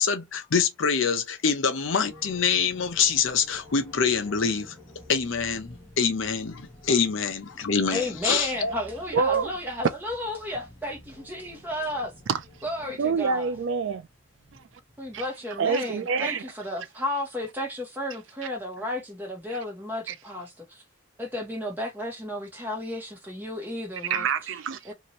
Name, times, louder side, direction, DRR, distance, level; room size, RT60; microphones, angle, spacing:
voice 1, 0.0-4.8 5.1-8.7, left 6 dB, 70° left, 0.7 m, -25 dB
sound 1, 2.0-15.3, left 1 dB, 10° left, 1.0 m, -51 dB
voice 2, 7.9-12.1 12.6-13.5 15.0-20.8 21.2-24.3 24.8-24.9, left 1 dB, 10° right, 1.1 m, -33 dB
voice 3, 9.1-9.5 12.3-12.4 13.0-14.1 14.5-14.6 15.1-15.2 15.6-16.4 19.5-19.6 20.1-20.2 24.1-24.9, right 5 dB, 65° right, 0.4 m, -26 dB
2.9 x 2.5 x 2.9 m
head